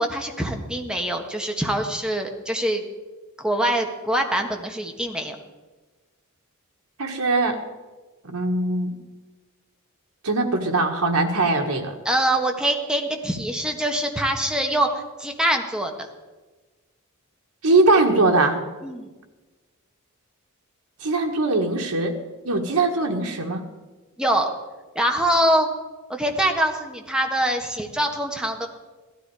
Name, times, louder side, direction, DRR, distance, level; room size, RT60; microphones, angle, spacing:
voice 1, 0.0-2.8 3.4-5.4 12.0-16.1 18.8-19.1 24.2-24.5 24.9-25.7 26.1-28.7, right 1 dB, 5° right, 2 dB, 1.4 m, -24 dB
voice 2, 7.0-7.6 8.2-9.0 10.2-12.0 17.6-18.6 21.0-22.1 22.4-23.7, right 2 dB, 85° right, 2 dB, 1.6 m, -21 dB
16.5 x 13.0 x 4.8 m, 1.2 s
head